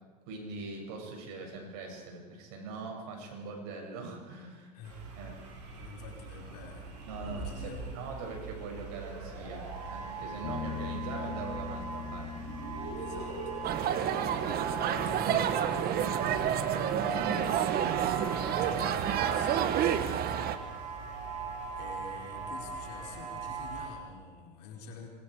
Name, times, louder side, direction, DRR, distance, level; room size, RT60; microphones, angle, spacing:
voice 1, 0.3-4.7 5.2-5.4 7.0-12.3 14.4-14.6, right 3 dB, 70° right, 1 dB, 7.7 m, -42 dB
sound 1, 4.8-23.9, right 5 dB, 90° right, 7.4 m, -39 dB
voice 2, 5.7-6.9 7.2-8.4 13.0-14.4 14.9-20.1 21.8-25.1, left 5 dB, 80° left, 0 dB, 4.9 m, -47 dB
sound 2, 10.4-19.9, left 6 dB, 50° left, 3.0 m, -44 dB
sound 3, 13.6-20.6, right 10 dB, 50° right, 1.7 m, -29 dB
26.5 x 22.5 x 5.1 m, 1.4 s
supercardioid pair, 100°, 21 cm